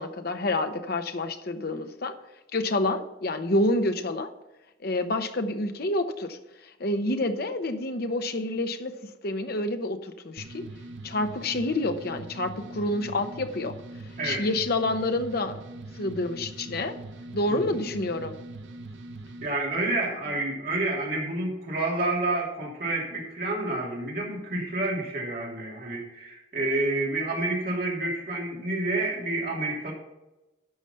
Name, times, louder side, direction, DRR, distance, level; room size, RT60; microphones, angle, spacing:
voice 1, 0.0-2.1 2.5-4.3 4.8-6.4 6.8-8.9 9.2-10.7 11.0-13.7 14.2-15.6 15.9-17.0 17.3-18.3, left 2 dB, 55° left, 8 dB, 0.9 m, -28 dB
sound 1, 10.4-19.5, right 2 dB, 80° right, 0.7 m, -42 dB
voice 2, 19.4-29.9, right 2 dB, 55° right, -3 dB, 3.0 m, -29 dB
12.0 x 5.0 x 5.6 m, 1.0 s
head